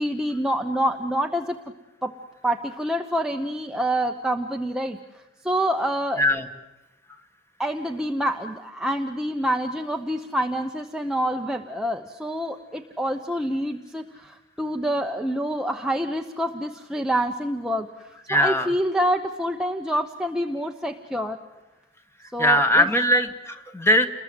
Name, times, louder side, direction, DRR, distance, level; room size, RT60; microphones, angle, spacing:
voice 1, 0.0-1.6 2.0-2.2 2.4-5.0 5.4-6.3 7.6-17.9 18.3-21.4 22.3-22.9, equal, 5° right, 3 dB, 0.8 m, -27 dB
voice 2, 18.3-18.7 22.4-24.1, equal, 10° left, 8 dB, 1.5 m, -20 dB
29.5 x 21.5 x 7.9 m, 1.1 s
head